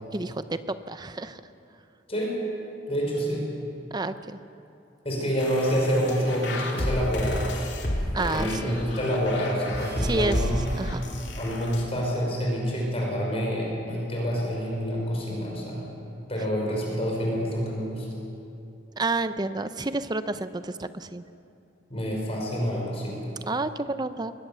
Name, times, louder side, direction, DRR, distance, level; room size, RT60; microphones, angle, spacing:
voice 1, 0.1-1.4 3.9-4.4 8.1-8.8 10.0-11.0 16.4-16.5 19.0-21.2 23.4-24.3, right 2 dB, 20° right, 12 dB, 0.6 m, -30 dB
voice 2, 2.9-3.5 5.0-7.5 8.3-10.6 11.4-15.8 16.3-18.1 21.9-23.2, equal, 30° left, -2 dB, 5.2 m, -27 dB
sound 1, 5.4-11.8, left 1 dB, 60° left, 2.8 m, -32 dB
sound 2, 9.7-12.0, right 1 dB, 55° right, 3.6 m, -38 dB
21.5 x 20.5 x 6.9 m, 2.7 s
head